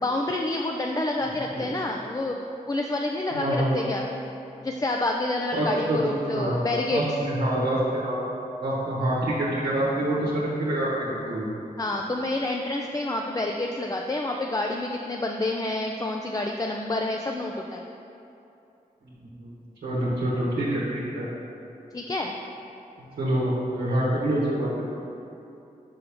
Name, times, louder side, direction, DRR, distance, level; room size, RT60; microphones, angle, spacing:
voice 1, 0.0-4.1 4.6-7.0 11.8-17.8 21.9-22.3, left 2 dB, 20° left, 1 dB, 0.4 m, -28 dB
voice 2, 3.3-3.8 5.5-6.0 6.3-6.6 6.9-8.1 8.6-11.5 19.0-19.5 19.8-21.2 23.0-24.8, right 1 dB, 90° right, -7 dB, 1.0 m, -26 dB
5.5 x 5.4 x 3.4 m, 2.8 s
cardioid pair, 45°, 16 cm